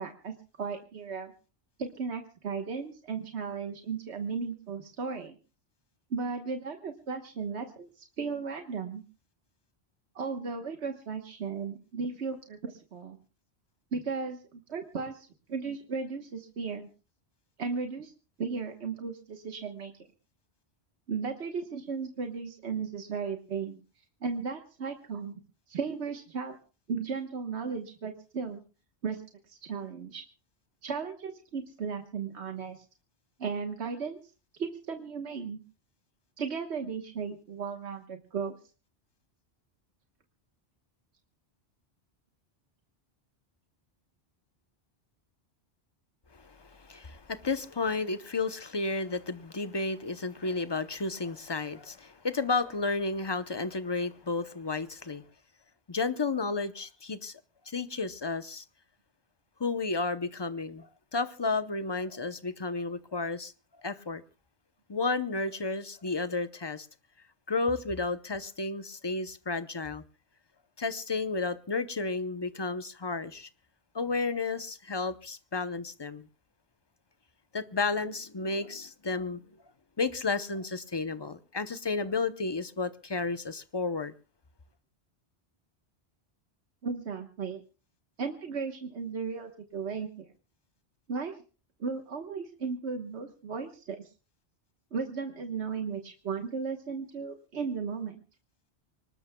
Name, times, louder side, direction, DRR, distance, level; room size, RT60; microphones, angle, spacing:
voice 1, 0.0-1.3 1.8-5.4 6.1-9.0 10.1-13.2 13.9-16.9 17.6-18.1 18.4-19.9 21.1-23.8 24.2-25.4 25.7-26.6 26.9-28.6 29.0-29.2 29.5-30.2 30.8-32.8 33.4-34.2 34.5-35.6 36.4-38.5 86.8-87.6 88.2-90.3 91.1-91.4 91.8-94.1 94.9-98.2, right 5 dB, 85° right, 1.5 m, -35 dB
voice 2, 46.3-55.2 55.9-57.4 57.7-58.6 59.6-63.5 63.8-64.2 64.9-66.9 67.5-70.0 70.8-73.5 73.9-76.3 77.5-79.4 80.0-84.1, left 3 dB, 25° left, 0.7 m, -32 dB
25.0 x 20.0 x 2.2 m
omnidirectional pair, 1.1 m